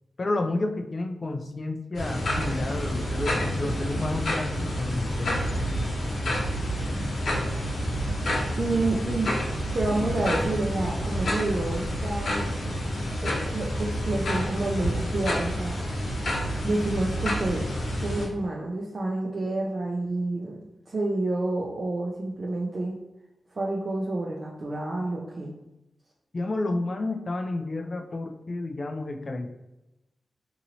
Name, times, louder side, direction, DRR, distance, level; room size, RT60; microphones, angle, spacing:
voice 1, 0.2-5.5 26.3-29.5, left 2 dB, 45° left, 4 dB, 0.4 m, -31 dB
sound 1, 1.9-18.3, equal, 70° left, 0.9 m, -29 dB
voice 2, 8.6-9.3 9.7-12.5 13.2-15.8 16.6-17.7 17.9-20.6 20.9-23.0 23.5-25.5, right 2 dB, 50° right, -2 dB, 0.5 m, -29 dB
2.9 x 2.7 x 2.7 m, 0.97 s
cardioid pair, 65°, 0 cm